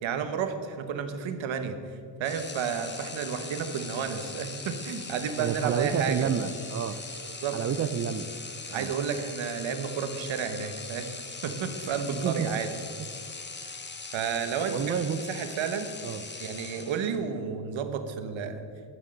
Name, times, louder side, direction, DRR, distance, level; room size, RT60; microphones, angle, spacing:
voice 1, 0.0-1.8 2.2-6.3 7.4-7.6 8.7-11.1 11.4-12.7 14.1-15.9 16.4-18.6, right 7 dB, 70° right, 8 dB, 1.2 m, -31 dB
sound 1, 2.2-17.3, left 4 dB, 25° left, 1.0 m, -41 dB
voice 2, 5.4-7.0 7.5-8.3 8.7-8.9 12.2-12.6 14.7-15.2 16.0-16.2, right 7 dB, 35° right, 11 dB, 0.4 m, -29 dB
11.0 x 6.4 x 7.7 m, 2.3 s
cardioid pair, 110°, 47 cm